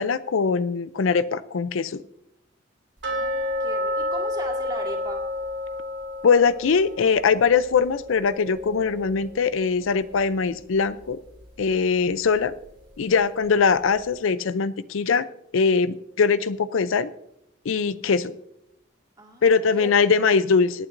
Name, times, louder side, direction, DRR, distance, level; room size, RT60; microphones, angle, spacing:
voice 1, 0.0-2.0 6.2-11.2 11.6-12.5 13.0-15.2 15.5-17.1 17.7-18.3 19.4-20.9, left 5 dB, 80° left, 15 dB, 0.5 m, -21 dB
sound 1, 3.0-9.9 10.2-10.3 10.8-10.9 11.4-11.5, left 1 dB, 60° right, 2.5 m, -31 dB
voice 2, 3.1-5.2 19.2-20.3, right 1 dB, 20° right, 0 dB, 2.0 m, -38 dB
25.5 x 8.8 x 2.6 m, 0.81 s
head